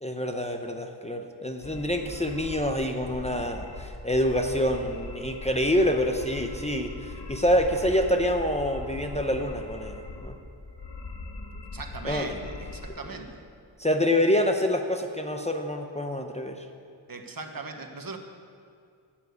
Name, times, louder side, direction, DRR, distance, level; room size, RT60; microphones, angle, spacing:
voice 1, 0.0-10.3 12.0-12.4 13.8-16.6, equal, 15° left, 3 dB, 0.7 m, -26 dB
sound 1, 1.6-12.9, left 3 dB, 60° left, 1.6 m, -40 dB
voice 2, 11.7-13.4 17.1-18.2, right 3 dB, 50° right, 5 dB, 1.2 m, -39 dB
12.0 x 8.6 x 8.1 m, 2.3 s
wide cardioid pair, 105°, 46 cm